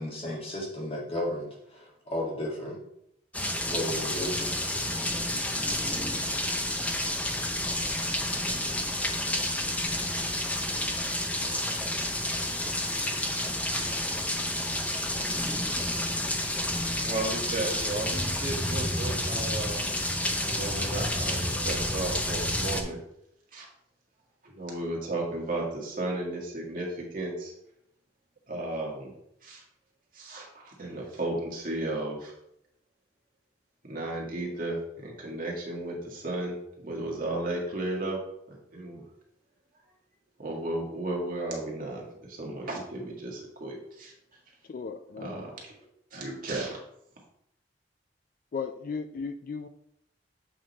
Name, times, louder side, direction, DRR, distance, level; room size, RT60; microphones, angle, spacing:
voice 1, 0.0-2.8 3.7-4.6, left 1 dB, 30° left, -2 dB, 1.7 m, -34 dB
sound 1, 3.3-22.8, left 1 dB, 10° left, 0.6 m, -30 dB
voice 2, 17.0-19.8 20.4-23.0 23.5-23.7 24.4-27.5 28.5-29.1 29.4-29.6 30.1-32.3 33.8-36.6 36.8-38.2 38.5-39.0 40.4-44.1 45.2-45.7 46.1-46.8, right 2 dB, 50° right, -2 dB, 1.7 m, -34 dB
voice 3, 44.7-45.5 48.5-49.7, left 5 dB, 50° left, 9 dB, 0.3 m, -36 dB
7.6 x 3.7 x 4.1 m, 0.77 s
head